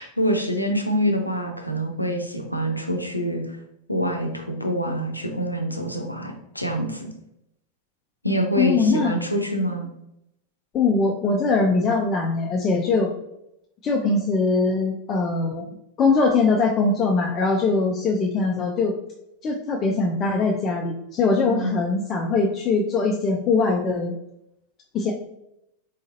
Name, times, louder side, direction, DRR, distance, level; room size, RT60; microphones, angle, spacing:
voice 1, 0.0-3.6 3.9-7.1 8.2-9.9 21.5-21.7, equal, 90° left, 3 dB, 0.6 m, -26 dB
voice 2, 8.6-9.1 10.7-13.1 13.8-15.7 16.0-19.0 19.4-24.1 24.9-25.1, left 3 dB, 30° left, 0 dB, 0.5 m, -22 dB
4.0 x 3.8 x 2.5 m, 0.81 s
figure-of-eight pair, 90°, 0 cm